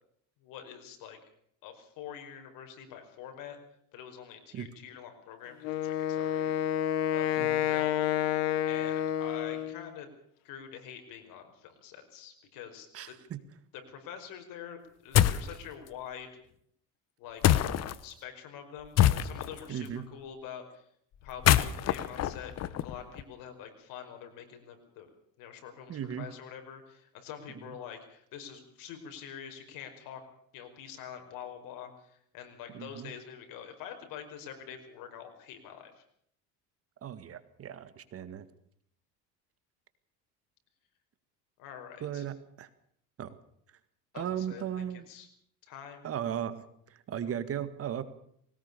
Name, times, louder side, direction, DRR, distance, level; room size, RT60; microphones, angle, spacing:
voice 1, 0.4-1.2 1.6-3.6 3.9-6.5 7.1-8.0 8.7-10.1 10.4-12.9 13.7-16.3 17.2-17.6 18.0-20.8 21.2-25.1 25.4-30.2 30.5-36.0 41.6-42.3 44.1-45.3 45.7-46.1 47.2-47.3, left 8 dB, 70° left, 6 dB, 5.2 m, -46 dB
Wind instrument woodwind instrument, 5.6-9.9, left 12 dB, 85° left, 1.8 m, -29 dB
voice 2, 12.9-13.4 19.7-20.0 25.9-26.3 27.7-27.8 32.7-33.1 37.0-38.5 42.0-42.7 43.2-43.3 44.2-45.1 46.0-48.0, right 9 dB, 40° right, 13 dB, 1.9 m, -36 dB
sound 1, 15.1-15.5 17.4-18.0 19.0-19.6 21.3-23.2, left 12 dB, 50° left, 1.3 m, -25 dB
21.0 x 19.0 x 6.9 m, 0.68 s
cardioid pair, 125°, 34 cm